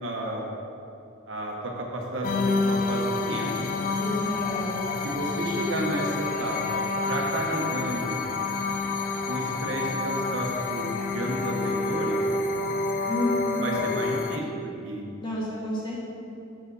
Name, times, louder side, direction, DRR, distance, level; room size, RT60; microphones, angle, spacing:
voice 1, 0.0-0.5 1.3-3.8 5.0-8.2 9.3-12.2 13.6-15.0, right 1 dB, 80° right, 0 dB, 1.2 m, -32 dB
sound 1, 2.2-14.4, left 3 dB, 45° left, 0.5 m, -28 dB
voice 2, 4.0-5.0 13.1-13.8 15.2-16.1, left 1 dB, 25° left, -6 dB, 1.6 m, -31 dB
8.0 x 5.4 x 4.0 m, 2.7 s
head